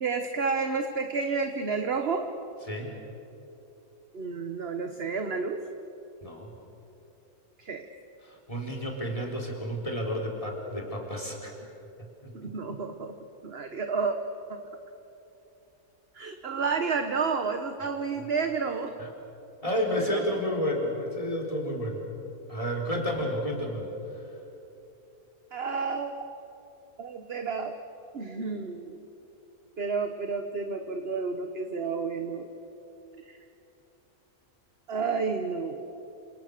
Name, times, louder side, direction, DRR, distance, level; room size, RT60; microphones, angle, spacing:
voice 1, 0.0-2.3 4.1-5.6 7.6-7.9 12.3-13.1 13.4-14.2 16.1-18.9 20.0-20.2 25.5-26.1 27.0-27.7 28.1-29.0 29.8-32.5 33.3-33.4 34.9-35.8, right 5 dB, 45° right, 6 dB, 1.3 m, -30 dB
voice 2, 6.2-6.5 8.2-11.5 12.0-12.5 19.0-19.1 19.6-22.0 22.5-23.9, equal, 20° left, -1 dB, 4.3 m, -31 dB
29.0 x 27.0 x 6.7 m, 2.9 s
omnidirectional pair, 1.5 m